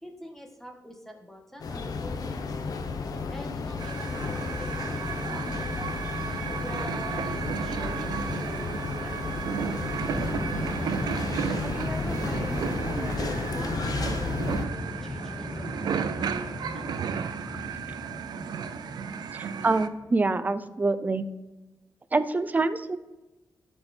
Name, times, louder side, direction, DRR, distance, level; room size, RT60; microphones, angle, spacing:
voice 1, 0.0-2.4 3.3-5.7 6.6-10.4 11.6-16.9, equal, 5° left, 2 dB, 1.5 m, -44 dB
sound 1, 1.6-14.6, left 4 dB, 60° left, 0.9 m, -33 dB
sound 2, 3.8-19.9, right 7 dB, 80° right, 0.6 m, -33 dB
sound 3, 10.1-20.1, left 2 dB, 25° left, 0.7 m, -37 dB
voice 2, 19.3-21.3 22.1-23.0, right 3 dB, 25° right, 12 dB, 0.6 m, -26 dB
12.0 x 5.6 x 4.4 m, 1.1 s
wide cardioid pair, 110°, 7 cm